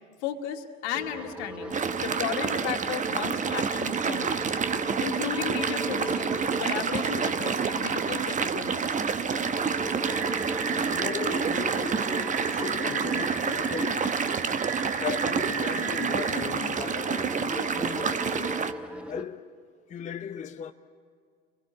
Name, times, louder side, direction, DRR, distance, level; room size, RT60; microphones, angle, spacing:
voice 1, 0.2-1.7 2.0-4.5 5.0-8.9, left 9 dB, 60° left, 2.4 m, -34 dB
sound 1, 0.9-19.2, equal, 5° right, 1.3 m, -40 dB
sound 2, 1.7-18.7, right 6 dB, 20° right, 1.0 m, -28 dB
sound 3, 10.0-16.4, right 5 dB, 45° right, 2.5 m, -36 dB
voice 2, 10.7-14.3 15.0-18.6 19.1-19.5 19.9-20.7, left 8 dB, 20° left, 0.7 m, -37 dB
29.5 x 21.5 x 8.6 m
figure-of-eight pair, 75°, 38 cm